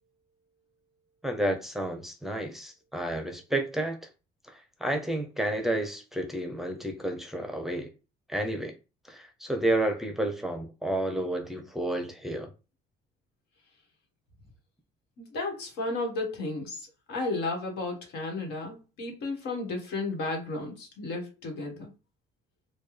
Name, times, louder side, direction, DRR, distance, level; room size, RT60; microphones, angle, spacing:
voice 1, 1.2-4.0 4.5-7.9 8.3-8.7 9.1-12.5, right 1 dB, ahead, 0.6 m, -31 dB
voice 2, 15.2-21.9, left 2 dB, 75° left, 1.5 m, -33 dB
4.4 x 2.3 x 3.2 m
cardioid pair, 110°, 17 cm